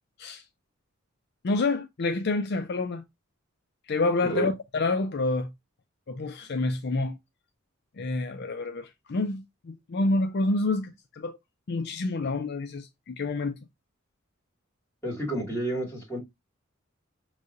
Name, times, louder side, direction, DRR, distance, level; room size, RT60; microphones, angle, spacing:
voice 1, 1.4-3.0 3.9-5.5 6.1-7.2 8.0-11.4 11.7-13.6, left 2 dB, 55° left, 0.5 m, -28 dB
voice 2, 15.0-16.2, right 2 dB, 10° left, 2.3 m, -30 dB
5.5 x 3.2 x 2.5 m
head